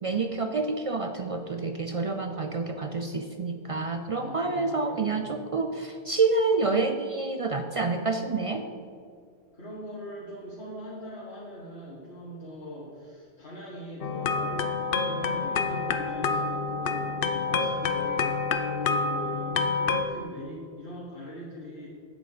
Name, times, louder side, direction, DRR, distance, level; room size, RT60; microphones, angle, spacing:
voice 1, 0.0-8.7, right 3 dB, 50° right, 6 dB, 0.4 m, -28 dB
voice 2, 4.1-5.4 9.5-18.3 18.6-21.9, left 1 dB, 80° left, -8 dB, 2.0 m, -42 dB
sound 1, 14.0-20.0, left 4 dB, 65° left, 0.8 m, -28 dB
8.0 x 8.0 x 5.0 m, 2.2 s
omnidirectional pair, 1.1 m